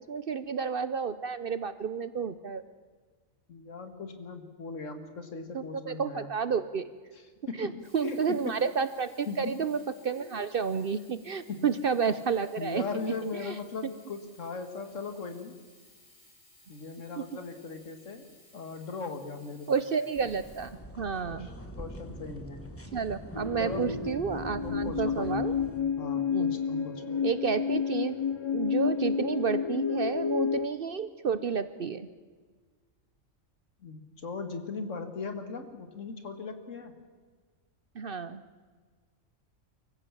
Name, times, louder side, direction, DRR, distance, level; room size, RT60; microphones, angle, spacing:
voice 1, 0.0-2.6 5.5-6.9 7.6-12.8 13.4-13.5 17.2-17.3 19.7-21.5 22.9-25.5 26.3-26.5 27.2-28.2 28.5-32.1 37.9-38.4, right 6 dB, 50° right, 14 dB, 0.8 m, -31 dB
voice 2, 3.5-6.3 7.1-8.5 9.3-9.6 10.2-10.3 11.5-11.8 12.6-15.6 16.7-18.3 18.5-19.7 21.3-22.7 23.6-24.1 24.6-25.4 25.7-27.1 33.8-37.1, left 4 dB, 70° left, 8 dB, 2.1 m, -39 dB
Sink (filling or washing), 7.7-21.5 22.2-22.3, left 1 dB, 85° left, 5.5 m, -59 dB
sound 1, 20.1-25.8, equal, 10° left, 1.4 m, -43 dB
sound 2, 23.3-30.7, left 6 dB, 45° left, 0.3 m, -30 dB
24.0 x 15.0 x 7.3 m, 1.5 s
omnidirectional pair, 1.4 m